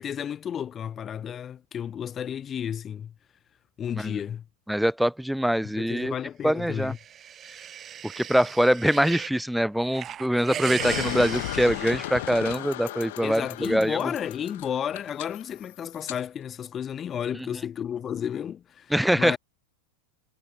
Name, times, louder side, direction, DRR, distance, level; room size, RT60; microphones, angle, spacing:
voice 1, 0.0-3.1 3.8-4.4 5.7-7.0 13.2-19.4, left 9 dB, 25° left, 3.0 m, -32 dB
voice 2, 4.7-6.1 6.4-6.9 8.0-14.0 18.9-19.4, equal, ahead, 3.1 m, -24 dB
sound 1, 6.7-9.4 9.8-12.7, right 9 dB, 25° right, 2.4 m, -38 dB
sound 2, 10.8-16.2, left 18 dB, 55° left, 6.4 m, -35 dB
figure-of-eight pair, 90°, 0 cm